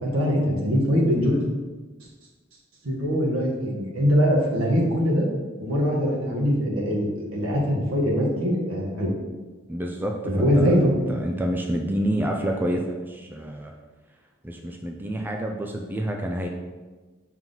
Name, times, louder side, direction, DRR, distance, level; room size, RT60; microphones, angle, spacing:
voice 1, 0.0-1.4 2.8-5.3 5.6-9.1 10.2-10.9, equal, 85° right, -3 dB, 1.5 m, -22 dB
voice 2, 9.7-13.7 14.4-16.5, right 1 dB, 10° right, 1 dB, 0.4 m, -28 dB
5.6 x 4.5 x 3.9 m, 1.3 s
head